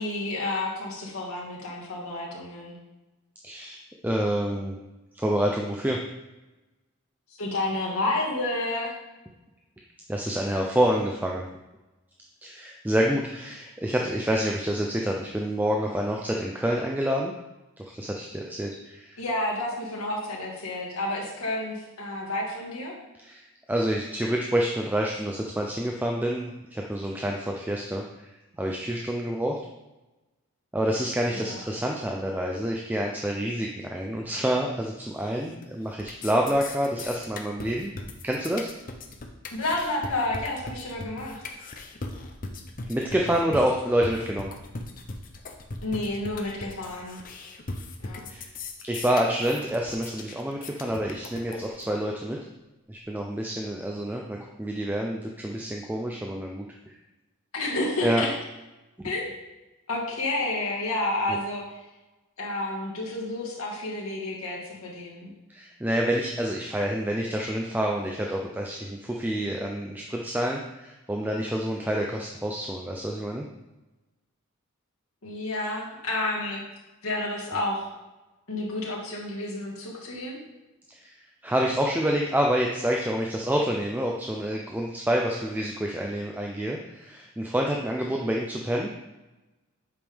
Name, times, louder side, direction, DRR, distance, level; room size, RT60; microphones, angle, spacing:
voice 1, 0.0-2.8 7.4-8.9 19.2-22.9 31.3-31.6 39.5-41.4 45.8-47.2 48.0-48.3 57.5-58.3 59.0-59.3 59.9-61.6 62.4-65.3 75.2-76.6 77.0-77.9 78.5-80.4, left 2 dB, 80° left, -2 dB, 1.8 m, -30 dB
voice 2, 3.4-4.8 5.1-6.0 10.1-11.4 12.4-17.3 17.8-19.2 23.2-28.3 28.6-29.6 30.7-37.9 38.2-38.7 42.9-44.5 48.3-48.4 48.8-52.4 52.9-56.9 58.0-58.2 59.0-59.1 61.3-61.4 65.5-73.5 80.9-81.1 81.4-88.9, equal, 10° right, 0 dB, 0.4 m, -28 dB
sound 1, 35.2-35.7 35.9-51.9, left 3 dB, 40° left, 0.6 m, -39 dB
7.9 x 5.1 x 3.5 m, 1.1 s
head